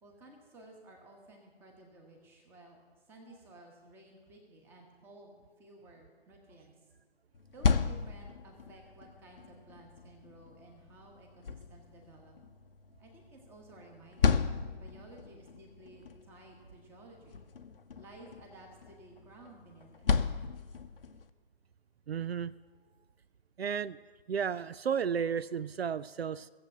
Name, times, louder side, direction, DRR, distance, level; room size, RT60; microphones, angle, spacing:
voice 1, 0.0-2.8 3.1-6.7 7.5-12.3 13.0-17.4 18.0-20.1, right 2 dB, 5° right, 1 dB, 1.2 m, -55 dB
sound 1, 7.3-21.3, left 5 dB, 60° left, 0.8 m, -35 dB
voice 2, 22.1-22.5 23.6-24.0 24.3-26.5, right 7 dB, 75° right, 16 dB, 0.5 m, -33 dB
16.0 x 7.7 x 7.6 m, 1.5 s
figure-of-eight pair, 150°, 32 cm